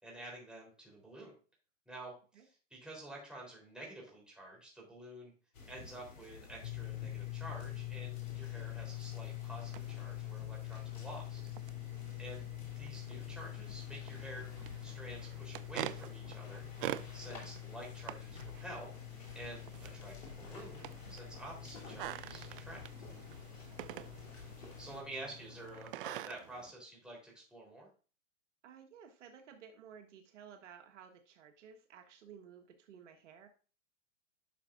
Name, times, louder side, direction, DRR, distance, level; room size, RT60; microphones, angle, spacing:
voice 1, 0.0-1.3 1.9-5.3 5.7-11.4 12.2-12.5 12.8-16.7 17.1-18.9 19.3-22.8 24.8-27.9, right 1 dB, ahead, -3 dB, 3.8 m, -49 dB
sound 1, 5.5-25.0, left 3 dB, 80° left, 3.5 m, -52 dB
sound 2, 6.6-25.9, left 23 dB, 50° left, 0.5 m, -46 dB
sound 3, 9.4-26.7, right 14 dB, 45° right, 0.5 m, -48 dB
voice 2, 28.6-33.5, right 7 dB, 65° right, 5 dB, 1.4 m, -55 dB
11.0 x 6.0 x 2.6 m, 0.37 s
hypercardioid pair, 135°, 38 cm